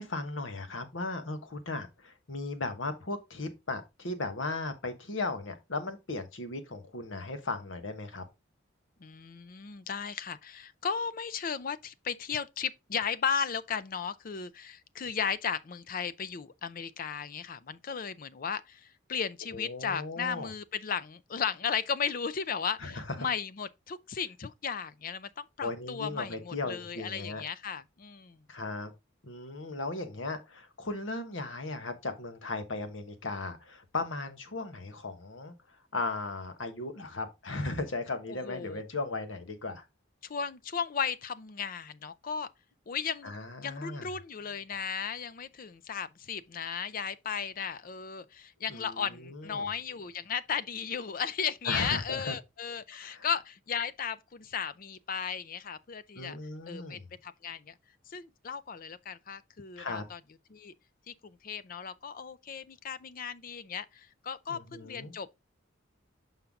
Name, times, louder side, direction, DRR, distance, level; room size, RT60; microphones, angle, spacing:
voice 1, 0.0-8.2 19.5-20.5 22.8-23.0 25.6-27.4 28.5-28.9 29.2-35.5 35.9-39.8 43.2-44.1 48.7-49.7 51.7-52.4 52.9-53.3 56.1-57.0 59.8-60.0 64.5-65.1, left 3 dB, 75° left, 1.3 m, -37 dB
voice 2, 9.0-28.4 38.3-38.8 40.2-42.5 42.9-43.3 43.6-56.4 56.7-57.7 58.1-60.2 60.5-60.7 61.1-65.3, left 6 dB, 45° left, 0.5 m, -35 dB
5.8 x 5.6 x 3.6 m
head